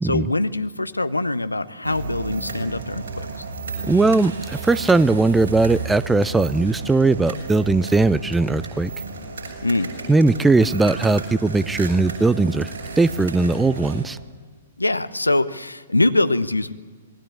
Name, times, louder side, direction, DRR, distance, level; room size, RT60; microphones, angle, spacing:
voice 1, 0.0-3.4 9.6-9.9 14.8-16.7, left 2 dB, 80° left, 13 dB, 1.0 m, -23 dB
sound 1, 1.8-14.0, right 4 dB, 55° right, 7.0 m, -33 dB
voice 2, 3.8-8.9 10.1-14.2, right 3 dB, 5° right, 18 dB, 0.6 m, -19 dB
26.0 x 20.0 x 8.3 m, 1.5 s
figure-of-eight pair, 110°, 0 cm